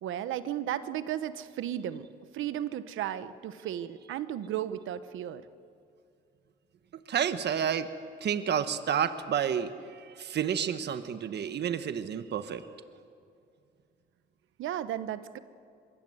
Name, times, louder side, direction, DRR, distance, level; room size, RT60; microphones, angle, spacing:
voice 1, 0.0-2.1 2.3-5.4 14.6-15.4, right 11 dB, 80° right, 13 dB, 1.1 m, -34 dB
voice 2, 7.1-7.9 8.2-12.6, right 8 dB, 60° right, 10 dB, 1.3 m, -30 dB
24.0 x 22.0 x 8.0 m, 2.4 s
cardioid pair, 90°, 20 cm